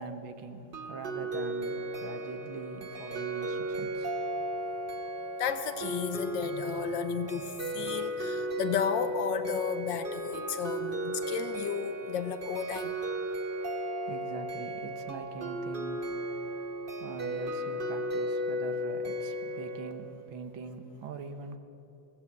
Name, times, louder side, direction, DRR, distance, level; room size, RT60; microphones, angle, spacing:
voice 1, 0.0-4.2 14.1-16.7 17.0-21.6, right 4 dB, 85° right, 8 dB, 2.0 m, -43 dB
sound 1, 0.7-19.9, right 1 dB, 35° right, 1.1 m, -35 dB
voice 2, 5.4-12.9, left 8 dB, 70° left, 11 dB, 1.5 m, -33 dB
21.5 x 17.0 x 7.4 m, 2.9 s
omnidirectional pair, 2.1 m